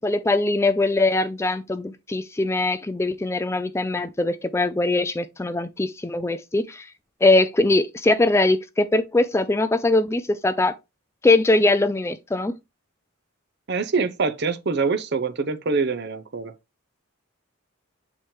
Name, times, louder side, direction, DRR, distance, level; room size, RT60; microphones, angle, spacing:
voice 1, 0.0-6.9 7.2-10.7 11.2-12.5, left 2 dB, 15° left, 0.3 m, -21 dB
voice 2, 13.7-16.5, right 4 dB, 50° right, 0.6 m, -24 dB
7.3 x 4.4 x 3.1 m
head